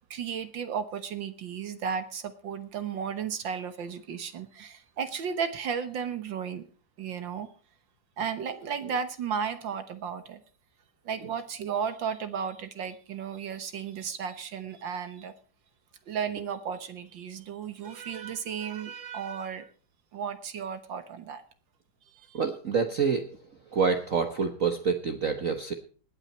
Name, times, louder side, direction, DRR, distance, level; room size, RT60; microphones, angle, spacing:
voice 1, 0.1-6.6 7.0-7.5 8.2-10.4 11.1-15.3 16.1-19.7 20.1-21.4 22.3-22.4, right 7 dB, 65° right, 10 dB, 1.7 m, -34 dB
voice 2, 22.3-23.4 23.7-25.7, right 5 dB, 45° right, 6 dB, 1.3 m, -27 dB
19.5 x 8.9 x 4.3 m, 0.40 s
omnidirectional pair, 2.3 m